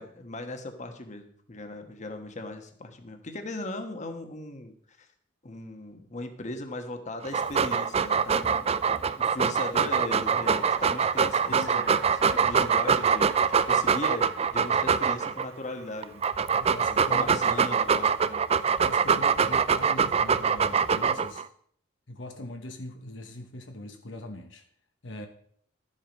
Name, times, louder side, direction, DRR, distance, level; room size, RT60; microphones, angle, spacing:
voice 1, 0.0-5.1 5.4-8.7 9.2-16.2 16.9-18.4, left 2 dB, 40° left, 1.3 m, -38 dB
Dog, 7.2-15.5 16.0-21.4, right 6 dB, 35° right, 0.4 m, -24 dB
sound 1, 9.9-17.9, right 4 dB, 75° right, 1.5 m, -45 dB
voice 2, 11.5-11.9 16.6-17.6 18.8-21.5 22.1-24.7 25.0-25.3, left 1 dB, 70° left, 1.1 m, -41 dB
12.5 x 7.6 x 5.3 m
head